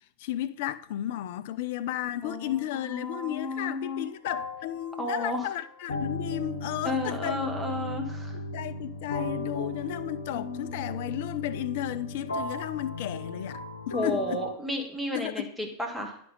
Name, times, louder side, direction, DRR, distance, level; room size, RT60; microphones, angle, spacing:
voice 1, 0.2-7.4 8.5-13.6 13.9-14.4 15.1-15.5, left 12 dB, 50° left, 0.4 m, -33 dB
voice 2, 2.2-4.0 5.0-5.5 6.8-8.4 13.9-16.2, left 1 dB, 5° right, 1.2 m, -32 dB
sound 1, 3.4-3.6 4.2-14.5, left 2 dB, 70° left, 0.8 m, -36 dB
9.7 x 5.2 x 3.8 m
figure-of-eight pair, 90°, 0 cm